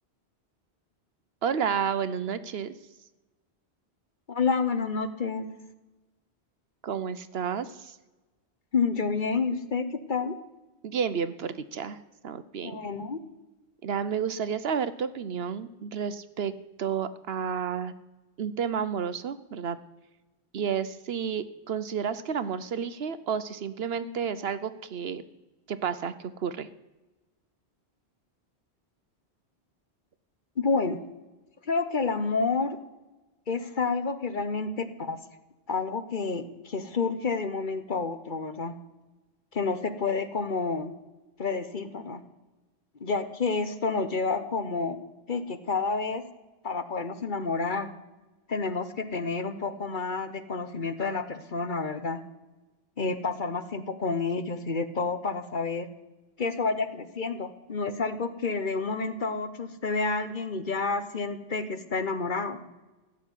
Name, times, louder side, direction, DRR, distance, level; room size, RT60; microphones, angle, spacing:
voice 1, 1.4-2.7 6.8-8.0 10.8-12.0 12.2-12.8 13.8-16.5 16.8-17.9 18.4-19.8 20.5-25.2 25.7-26.7, right 7 dB, 65° right, 14 dB, 1.0 m, -31 dB
voice 2, 4.3-5.5 8.7-10.4 12.6-13.2 30.6-31.0 31.6-32.8 33.5-35.2 35.7-38.8 39.5-40.9 41.4-42.2 43.0-45.0 45.3-46.2 46.6-47.9 48.5-52.2 53.0-55.9 56.4-62.6, left 4 dB, 50° left, 11 dB, 1.2 m, -29 dB
15.5 x 7.6 x 9.9 m, 1.1 s
omnidirectional pair, 1.1 m